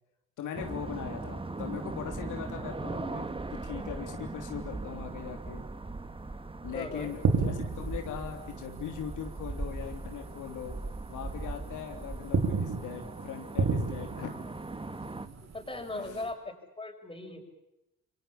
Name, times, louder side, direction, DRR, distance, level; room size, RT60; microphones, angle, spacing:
voice 1, 0.4-5.6 6.6-10.8 11.1-14.3 15.9-16.2, left 8 dB, 80° left, 4 dB, 3.4 m, -40 dB
sound 1, 0.5-15.3, right 3 dB, 20° right, 1.7 m, -39 dB
voice 2, 6.7-7.2 15.4-17.4, left 2 dB, 15° left, 4 dB, 6.8 m, -39 dB
sound 2, 7.0-10.0 10.3-10.5 11.0-11.8 12.1-16.3, right 4 dB, 60° right, 4.1 m, -32 dB
28.0 x 25.0 x 7.3 m, 0.91 s
cardioid pair, 90°, 30 cm